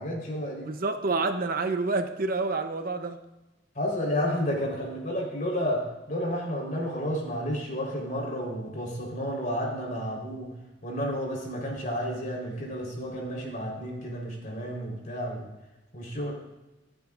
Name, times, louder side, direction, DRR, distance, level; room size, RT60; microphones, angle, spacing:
voice 1, 0.0-0.7 3.7-10.5 10.8-15.5 15.9-16.3, equal, 45° left, -1 dB, 4.1 m, -31 dB
voice 2, 0.6-3.2, right 3 dB, 50° right, 7 dB, 0.8 m, -28 dB
25.0 x 9.2 x 2.5 m, 1.0 s
head